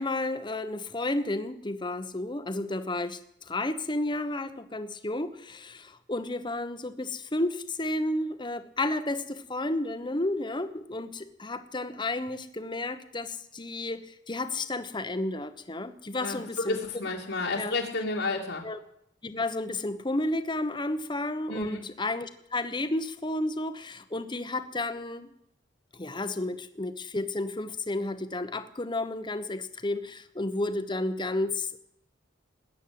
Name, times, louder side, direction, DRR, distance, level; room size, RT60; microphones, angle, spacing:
voice 1, 0.0-17.0 17.5-17.8 18.6-18.8 19.2-25.3 25.9-31.8, left 2 dB, 25° left, 10 dB, 1.1 m, -32 dB
voice 2, 16.7-18.7 21.5-21.8, left 3 dB, 70° left, -3 dB, 2.3 m, -31 dB
20.0 x 9.3 x 7.7 m, 0.76 s
head